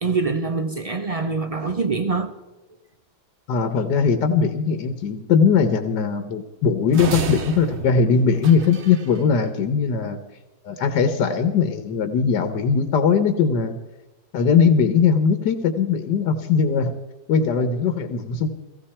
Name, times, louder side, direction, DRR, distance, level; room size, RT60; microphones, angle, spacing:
voice 1, 0.0-2.3, right 4 dB, 75° right, 0.3 m, -24 dB
voice 2, 3.5-10.2 10.6-13.8 14.3-16.9 17.3-18.5, left 6 dB, 75° left, 1.7 m, -20 dB
sound 1, 6.9-9.2, right 5 dB, 50° right, 0.9 m, -31 dB
17.0 x 16.5 x 4.4 m
omnidirectional pair, 1.9 m